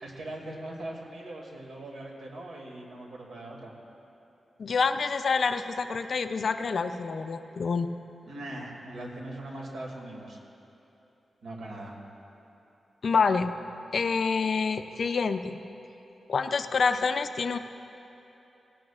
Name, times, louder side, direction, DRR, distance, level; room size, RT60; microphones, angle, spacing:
voice 1, 0.0-3.7 8.3-10.4 11.4-12.0, right 1 dB, 80° right, -1 dB, 2.4 m, -40 dB
voice 2, 4.6-7.9 13.0-13.5 13.9-15.6 16.3-17.6, left 5 dB, 55° left, 9 dB, 0.5 m, -27 dB
18.0 x 17.0 x 2.5 m, 3.0 s
wide cardioid pair, 135°, 0 cm